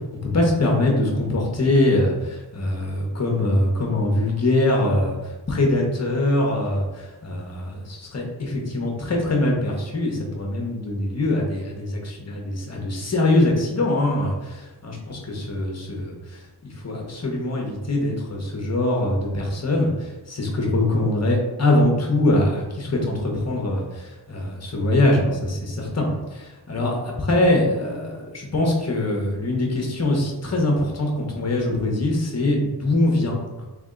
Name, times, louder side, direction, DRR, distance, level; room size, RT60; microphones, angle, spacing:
voice 1, 0.3-5.2 5.5-16.1 16.8-19.9 20.3-26.1 26.3-26.9 27.3-33.7, left 1 dB, 40° left, 0 dB, 1.0 m, -23 dB
3.4 x 3.2 x 3.7 m, 1.1 s
wide cardioid pair, 95°, 41 cm